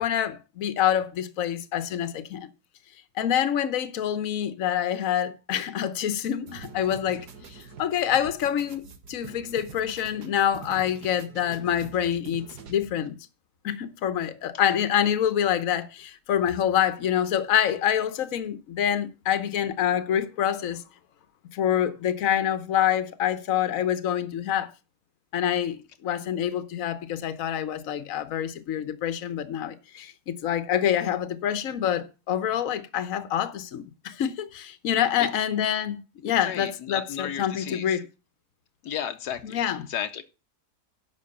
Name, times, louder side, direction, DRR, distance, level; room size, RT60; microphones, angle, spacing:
voice 1, 0.0-2.5 3.2-8.8 9.1-13.1 13.6-20.8 21.5-24.7 25.3-38.1 39.4-39.9, left 10 dB, 60° left, 1.3 m, -26 dB
sound 1, 6.5-13.1, right 5 dB, 80° right, 1.8 m, -45 dB
voice 2, 36.4-37.9 38.8-39.6 39.9-40.2, left 9 dB, 85° left, 1.4 m, -33 dB
11.0 x 6.2 x 6.7 m
omnidirectional pair, 1.7 m